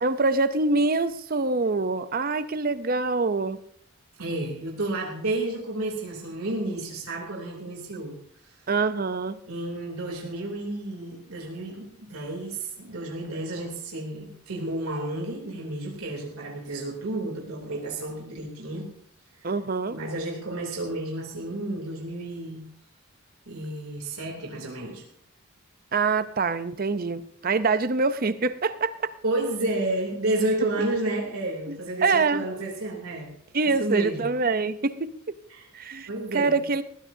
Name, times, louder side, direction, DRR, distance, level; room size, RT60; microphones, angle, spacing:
voice 1, 0.0-3.6 8.7-9.4 19.4-20.0 25.9-28.9 31.7-31.8 32.0-32.4 33.5-35.1 35.7-36.8, right 3 dB, 40° right, 13 dB, 0.6 m, -25 dB
voice 2, 4.2-8.2 9.5-18.9 19.9-22.6 23.5-25.0 29.2-33.3 33.8-34.3 35.5-35.7 36.1-36.6, right 2 dB, 80° right, -1 dB, 3.0 m, -31 dB
20.5 x 15.0 x 2.7 m, 0.63 s
head